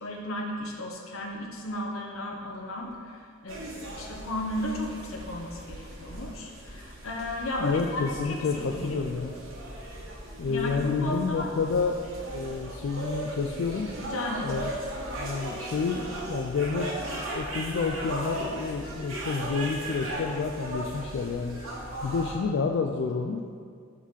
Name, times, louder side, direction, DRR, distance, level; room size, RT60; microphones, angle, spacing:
voice 1, 0.0-9.0 10.5-11.5 14.0-14.6, left 1 dB, 75° left, 0 dB, 0.8 m, -34 dB
sound 1, 3.5-22.3, right 1 dB, 70° right, 1.1 m, -37 dB
voice 2, 7.6-9.3 10.4-12.1 12.3-13.9 14.4-14.7 15.2-16.9 17.1-21.6 22.0-23.4, left 4 dB, 55° left, 2 dB, 0.3 m, -29 dB
4.7 x 3.6 x 5.6 m, 2.1 s
head